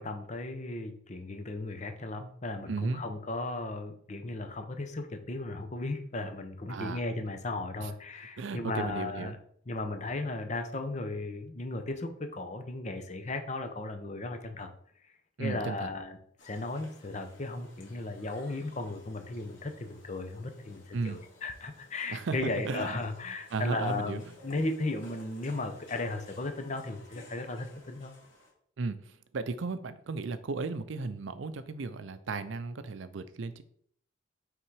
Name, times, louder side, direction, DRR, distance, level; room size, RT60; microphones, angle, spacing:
voice 1, 0.0-9.4 9.7-14.7 15.4-16.2 16.5-28.1, left 2 dB, 35° left, 7 dB, 0.8 m, -36 dB
voice 2, 2.7-3.0 6.7-7.0 7.8-7.9 8.4-9.3 15.4-15.9 20.9-21.2 22.1-22.4 22.6-22.9 23.5-24.3 28.8-33.6, right 4 dB, 70° right, 12 dB, 0.5 m, -35 dB
sound 1, 16.4-28.5, left 2 dB, 75° left, 2.0 m, -56 dB
6.0 x 3.7 x 4.7 m, 0.63 s
head